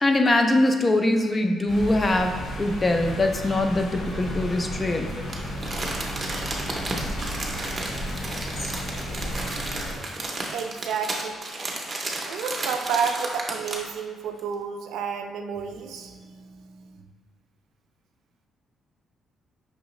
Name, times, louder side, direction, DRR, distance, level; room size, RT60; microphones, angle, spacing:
voice 1, 0.0-5.2, left 2 dB, 20° left, 4 dB, 0.3 m, -22 dB
sound 1, 1.7-10.0, equal, 55° left, 1.1 m, -33 dB
Crumpling crinkling, 5.3-14.0 14.4-14.5, right 2 dB, 25° right, 0.6 m, -33 dB
voice 2, 10.5-11.4 12.2-17.0, right 6 dB, 90° right, 5 dB, 0.3 m, -31 dB
5.4 x 3.1 x 3.0 m, 1.5 s
cardioid pair, 160°, 0 cm